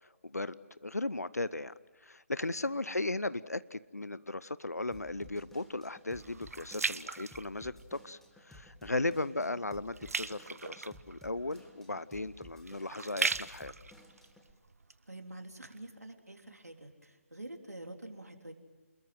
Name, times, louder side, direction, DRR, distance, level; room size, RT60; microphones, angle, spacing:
voice 1, 0.2-1.7 2.0-13.7, left 2 dB, 90° left, 18 dB, 0.8 m, -36 dB
voice 2, 2.7-3.0 9.1-9.6 15.1-18.5, right 1 dB, 90° right, 4 dB, 3.6 m, -48 dB
Drum kit / Drum, 4.9-14.5, left 1 dB, 5° left, 2.0 m, -56 dB
sound 1, 5.1-8.2 8.6-8.9 9.3-15.2 15.7-15.8, right 4 dB, 70° right, 0.8 m, -39 dB
29.0 x 21.5 x 7.7 m, 1.3 s
figure-of-eight pair, 145°, 8 cm